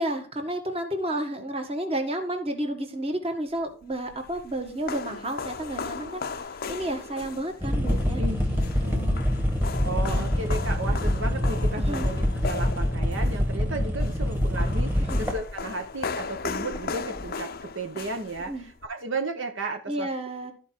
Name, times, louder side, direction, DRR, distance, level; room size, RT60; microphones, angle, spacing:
voice 1, 0.0-6.2 6.7-9.2 10.1-10.4 11.7-12.1 15.0-15.2 18.5-18.6 19.9-20.5, right 1 dB, 25° right, 5 dB, 1.5 m, -31 dB
sound 1, 3.8-18.9, left 4 dB, 45° left, 0.5 m, -37 dB
sound 2, 7.6-15.5 16.7-16.8 17.1-17.2, left 1 dB, 10° right, 1.6 m, -25 dB
voice 2, 9.8-20.1, right 2 dB, 60° right, 5 dB, 0.9 m, -34 dB
13.5 x 4.7 x 4.4 m, 0.40 s
head